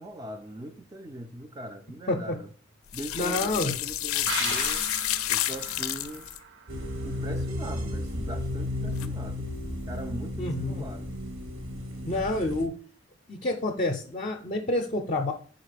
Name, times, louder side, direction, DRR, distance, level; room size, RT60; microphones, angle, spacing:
voice 1, 0.0-2.5 2.9-4.9 5.3-6.3 7.0-9.5 9.9-11.1, right 1 dB, 20° right, 0.3 m, -41 dB
sound 1, 2.9-6.4 8.9-9.1, left 13 dB, 90° left, 0.4 m, -29 dB
voice 2, 3.1-3.7 10.4-10.8 12.1-12.7 13.3-15.3, left 2 dB, 35° left, 0.5 m, -28 dB
sound 2, 4.3-7.7 8.0-8.1, right 5 dB, 60° right, 0.6 m, -38 dB
sound 3, 6.7-12.7, left 1 dB, 85° right, 1.2 m, -33 dB
4.9 x 3.9 x 5.0 m
head